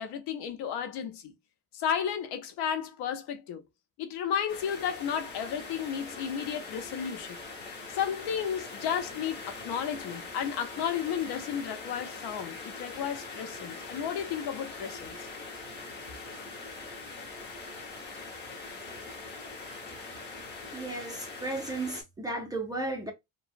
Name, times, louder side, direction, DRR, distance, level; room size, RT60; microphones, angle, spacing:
voice 1, 0.0-1.3 1.7-3.6 4.0-7.4 7.9-15.3, left 8 dB, 80° left, 0.8 m, -33 dB
sound 1, 4.5-22.0, left 3 dB, 25° left, 0.8 m, -42 dB
voice 2, 20.7-23.1, right 2 dB, 10° right, 0.4 m, -34 dB
3.0 x 2.0 x 2.5 m
cardioid pair, 160°, 38 cm